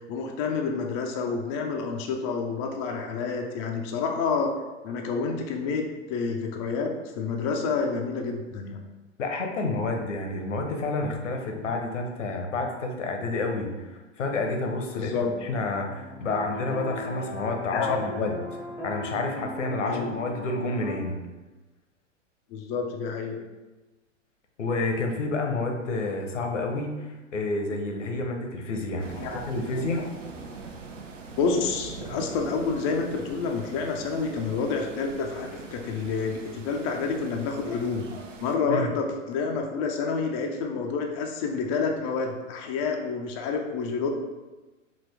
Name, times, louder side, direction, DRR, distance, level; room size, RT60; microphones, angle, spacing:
voice 1, 0.1-4.5 4.8-8.8 14.9-15.3 17.7-18.0 19.9-20.1 22.5-23.4 29.1-29.4 30.0-30.1 31.4-38.1 38.4-44.1, left 5 dB, 25° left, 2 dB, 0.4 m, -29 dB
voice 2, 9.2-13.9 14.2-18.4 18.8-21.2 24.6-29.1 29.5-30.1 38.7-38.9, left 3 dB, 70° left, 3 dB, 0.9 m, -29 dB
sound 1, 15.2-21.0, equal, 5° right, 0.7 m, -38 dB
sound 2, 29.0-38.6, right 4 dB, 75° right, 0.7 m, -42 dB
5.1 x 2.8 x 3.3 m, 1.1 s
figure-of-eight pair, 100°, 38 cm